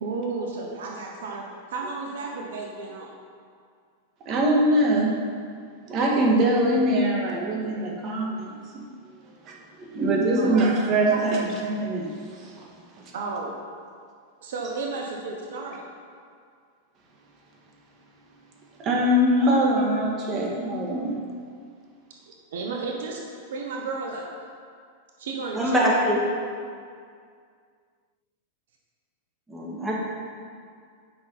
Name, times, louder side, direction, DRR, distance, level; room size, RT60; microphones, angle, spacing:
voice 1, 0.0-1.4 1.7-3.1 10.4-10.7 11.1-11.4 13.1-13.5 14.4-15.9 22.5-23.2 23.5-24.3 25.2-25.9, right 4 dB, 75° right, 0 dB, 1.0 m, -32 dB
voice 2, 4.3-5.2 5.9-8.6 9.5-12.1 12.4-12.7 18.8-21.1, right 1 dB, 40° right, -2 dB, 1.7 m, -23 dB
voice 3, 25.6-26.2 29.5-30.0, equal, 10° right, -4 dB, 2.0 m, -23 dB
8.6 x 5.6 x 4.2 m, 2.1 s
hypercardioid pair, 110°, 0 cm